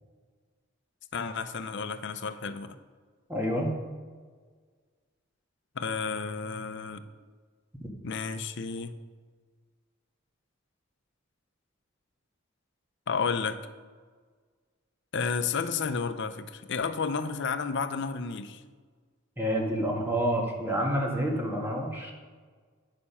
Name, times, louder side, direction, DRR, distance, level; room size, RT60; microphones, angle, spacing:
voice 1, 1.1-2.7 5.8-7.0 8.0-9.0 13.1-13.6 15.1-18.6, left 5 dB, 60° left, 10 dB, 0.6 m, -31 dB
voice 2, 3.3-3.7 19.4-22.1, equal, 10° right, -1 dB, 1.7 m, -28 dB
9.8 x 6.7 x 5.6 m, 1.5 s
head